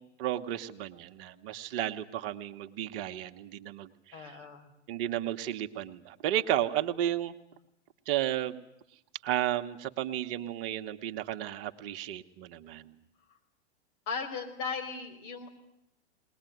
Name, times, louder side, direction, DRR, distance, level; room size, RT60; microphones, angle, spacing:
voice 1, 0.0-4.4 4.9-7.3 8.1-8.6 9.2-12.9, right 12 dB, 50° right, 7 dB, 1.4 m, -33 dB
voice 2, 4.1-4.7 14.1-15.5, left 5 dB, 50° left, 4 dB, 5.0 m, -37 dB
21.0 x 20.5 x 9.3 m, 0.81 s
hypercardioid pair, 105°, 35 cm